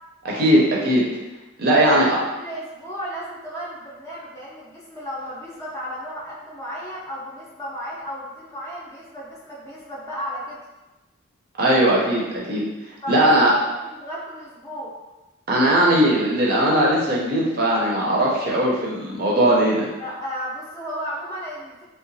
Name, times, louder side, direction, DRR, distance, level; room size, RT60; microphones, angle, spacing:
voice 1, 0.2-1.0 1.6-2.2 11.6-12.6 13.1-13.5 15.5-19.9, right 1 dB, 45° right, -4 dB, 0.5 m, -19 dB
voice 2, 1.8-10.6 13.0-14.9 20.0-21.8, equal, 15° left, -7 dB, 0.5 m, -34 dB
2.8 x 2.2 x 2.6 m, 1.1 s
head